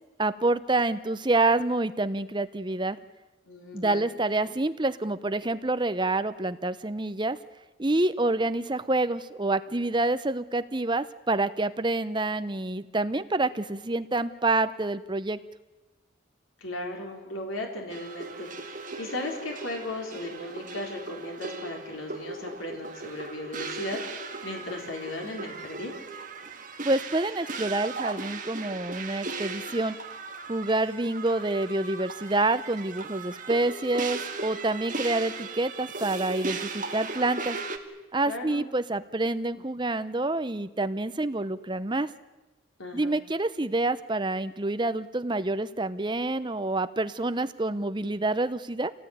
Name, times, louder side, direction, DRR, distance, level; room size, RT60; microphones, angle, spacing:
voice 1, 0.2-3.0 3.7-7.4 7.8-15.4 26.8-30.0 30.5-37.6 38.1-42.1 42.9-48.9, right 2 dB, 20° right, 12 dB, 0.8 m, -27 dB
voice 2, 3.5-4.1 16.6-26.0 38.3-38.7 42.8-43.2, left 1 dB, 85° left, 1 dB, 4.2 m, -36 dB
sound 1, 17.9-37.8, right 3 dB, 40° right, 2.0 m, -37 dB
27.0 x 17.5 x 9.4 m, 1.1 s
head